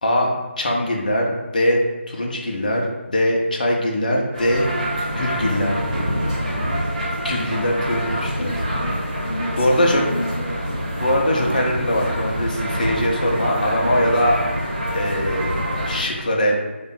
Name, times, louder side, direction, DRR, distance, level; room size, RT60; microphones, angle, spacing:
voice 1, 0.0-4.7 5.1-5.7 7.2-8.5 9.6-10.0 11.0-14.4 14.9-15.5 15.9-16.5, left 1 dB, 40° left, 0 dB, 0.6 m, -21 dB
sound 1, 4.3-16.0, equal, 35° right, 0.9 m, -26 dB
voice 2, 8.4-10.8 16.5-16.6, left 1 dB, 80° left, 1 dB, 0.3 m, -31 dB
3.3 x 2.2 x 3.9 m, 1.2 s
figure-of-eight pair, 160°, 7 cm